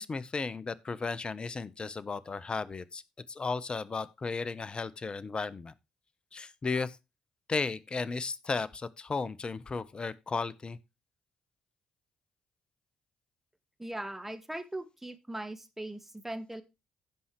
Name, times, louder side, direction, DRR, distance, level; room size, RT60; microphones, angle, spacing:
voice 1, 0.0-3.0 3.3-5.7 6.3-7.0 7.5-10.8, left 4 dB, 35° left, 1.0 m, -34 dB
voice 2, 13.8-16.6, right 1 dB, 10° right, 1.8 m, -39 dB
16.0 x 5.7 x 3.2 m
figure-of-eight pair, 40°, 3 cm